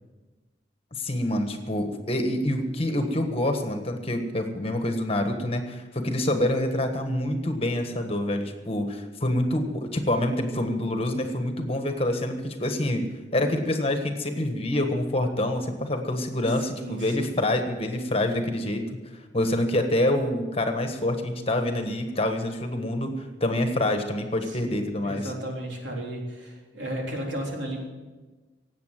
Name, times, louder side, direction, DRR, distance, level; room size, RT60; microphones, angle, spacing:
voice 1, 0.9-13.1 13.3-18.8 19.3-25.3, left 1 dB, 30° left, 6 dB, 1.4 m, -26 dB
voice 2, 16.7-17.4 24.4-27.8, right 1 dB, 70° right, -1 dB, 3.7 m, -34 dB
17.5 x 8.4 x 7.5 m, 1.2 s
head